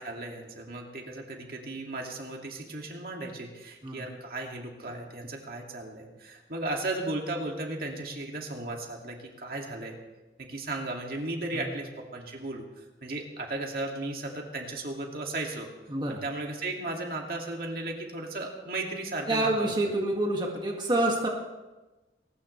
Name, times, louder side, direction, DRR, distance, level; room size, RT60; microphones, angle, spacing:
voice 1, 0.0-10.0 10.4-15.7 16.1-19.7, right 2 dB, 55° right, 1 dB, 2.3 m, -35 dB
voice 2, 15.9-16.2 19.3-21.3, right 1 dB, 25° right, -1 dB, 2.0 m, -27 dB
22.0 x 19.5 x 3.3 m, 1.1 s
head